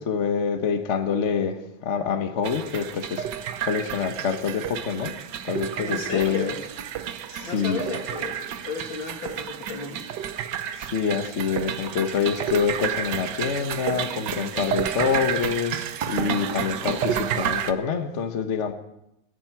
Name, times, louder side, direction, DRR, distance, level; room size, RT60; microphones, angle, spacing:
voice 1, 0.0-1.6 1.8-3.2 3.7-5.1 5.4-6.5 7.3-7.8 10.8-18.7, left 6 dB, 45° left, 7 dB, 1.1 m, -26 dB
sound 1, 2.4-17.7, right 9 dB, 65° right, 1.2 m, -31 dB
voice 2, 5.8-6.6 7.4-10.0, left 4 dB, 65° left, 2 dB, 3.2 m, -33 dB
29.5 x 10.5 x 4.6 m, 0.83 s
omnidirectional pair, 2.4 m